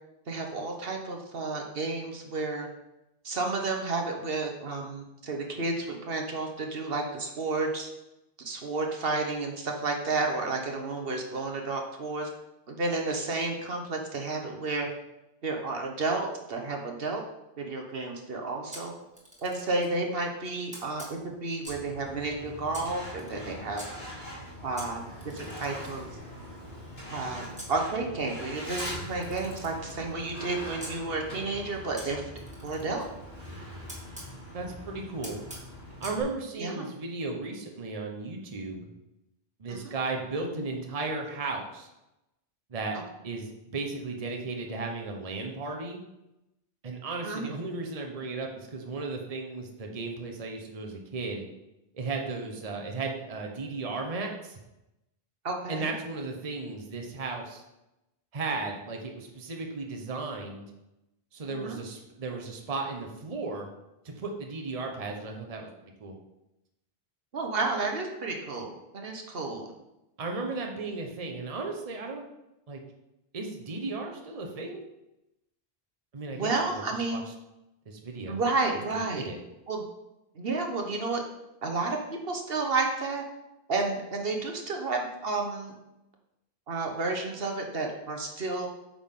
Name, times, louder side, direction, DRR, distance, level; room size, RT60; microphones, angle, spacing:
voice 1, 0.3-2.7 3.2-7.9 8.4-12.3 12.7-14.9 15.4-17.2 17.6-18.9 19.4-23.8 24.6-26.1 27.1-32.2 32.6-33.1 36.6-36.9 39.7-39.9 42.9-43.0 47.2-47.5 55.4-55.9 61.5-61.8 67.3-69.7 76.3-77.2 78.3-79.3 79.7-79.8 80.3-81.2 81.6-83.2 83.7-85.7 86.7-88.7, right 3 dB, 70° right, 2 dB, 1.3 m, -31 dB
Camera, 18.7-20.0 20.7-21.9 22.7-23.9 24.8-27.7 28.8-30.9 32.0-34.3 35.2-36.2, equal, 5° right, 1.8 m, -47 dB
Truck, 21.7-36.2, equal, 85° left, 3.6 m, -42 dB
voice 2, 34.5-35.4 36.0-38.9 39.6-41.9 42.7-43.0 43.2-46.0 46.8-51.4 51.9-54.6 55.7-57.6 58.3-60.6 61.3-63.7 64.0-65.7 66.0-66.1 70.2-72.2 72.7-72.8 73.3-74.8 76.1-76.5 77.1-77.2 77.9-78.4 79.1-79.4, right 3 dB, 40° right, 2 dB, 1.0 m, -35 dB
8.7 x 5.9 x 3.7 m, 0.92 s
omnidirectional pair, 1.0 m